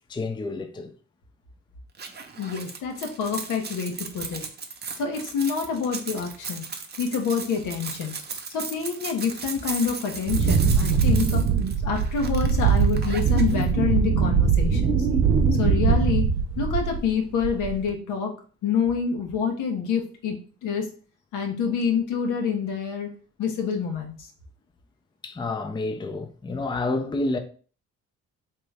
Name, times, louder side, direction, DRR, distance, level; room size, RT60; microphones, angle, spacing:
voice 1, 0.1-1.0 25.2-27.4, left 2 dB, 15° left, 0.4 m, -29 dB
sound 1, 1.9-13.6, right 5 dB, 35° right, 0.7 m, -37 dB
voice 2, 2.4-4.4 5.0-6.6 7.0-8.1 8.5-11.4 11.8-15.1 15.6-16.2 16.6-18.3 18.6-20.9 21.3-23.1 23.4-24.3, left 6 dB, 85° left, 1.0 m, -27 dB
Wind, 10.3-17.1 17.4-17.9, right 6 dB, 85° right, 0.7 m, -22 dB
3.6 x 2.9 x 3.3 m
cardioid pair, 90°, 30 cm